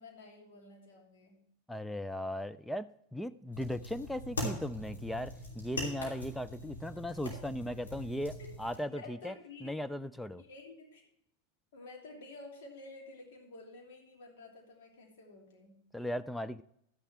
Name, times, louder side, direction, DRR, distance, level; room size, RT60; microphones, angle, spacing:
voice 1, 0.0-1.4 8.4-8.5 8.9-9.7 10.3-11.0 11.7-15.8, left 2 dB, 55° left, 1 dB, 2.7 m, -51 dB
voice 2, 1.7-9.3 9.6-10.4 15.9-16.6, left 1 dB, 5° left, 12 dB, 0.3 m, -38 dB
sound 1, 3.5-8.8, left 1 dB, 70° left, 3.1 m, -41 dB
12.0 x 9.8 x 3.2 m, 0.73 s
figure-of-eight pair, 90°, 0 cm